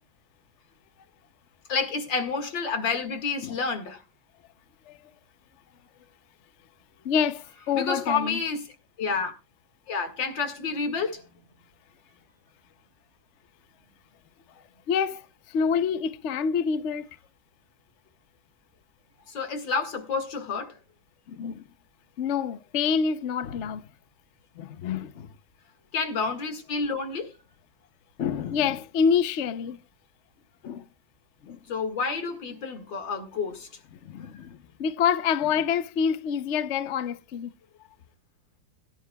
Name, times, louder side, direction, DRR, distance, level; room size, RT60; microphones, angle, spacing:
voice 1, 1.7-4.0 7.7-8.7 9.0-9.3 9.9-11.2 19.3-20.7 25.9-27.3 31.7-33.7, left 4 dB, 85° left, 2.7 m, -29 dB
voice 2, 7.0-8.4 14.9-17.1 21.3-21.6 22.2-23.9 24.6-25.3 28.2-29.8 30.6-30.9 31.4-31.6 34.0-37.5, left 7 dB, 55° left, 0.8 m, -27 dB
21.5 x 11.0 x 2.3 m
omnidirectional pair, 2.0 m